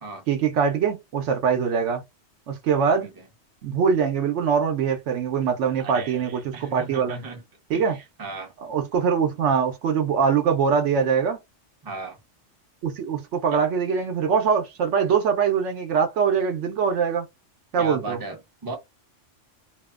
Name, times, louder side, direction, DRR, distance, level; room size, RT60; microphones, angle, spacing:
voice 1, 0.3-2.0 2.5-3.1 3.6-7.2 7.7-8.0 8.6-11.4 12.8-17.3 17.7-18.2, right 6 dB, 75° right, 0.9 m, -23 dB
voice 2, 5.8-7.4 7.7-8.5 11.8-12.2 13.5-13.7 17.8-18.8, right 3 dB, 25° right, 0.6 m, -36 dB
2.7 x 2.1 x 2.3 m
omnidirectional pair, 1.2 m